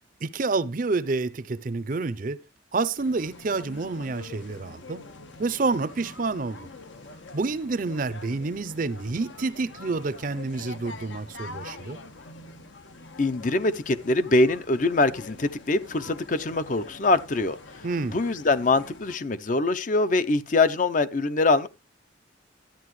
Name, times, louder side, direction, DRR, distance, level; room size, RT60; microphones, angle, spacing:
voice 1, 0.2-2.4 2.7-5.1 5.4-6.7 7.3-12.0 17.8-18.2, right 3 dB, 45° right, 0.5 m, -28 dB
sound 1, 3.0-19.2, left 3 dB, 80° left, 1.2 m, -45 dB
voice 2, 13.2-17.6 18.1-21.7, left 2 dB, 45° left, 0.6 m, -23 dB
13.0 x 9.1 x 3.1 m
head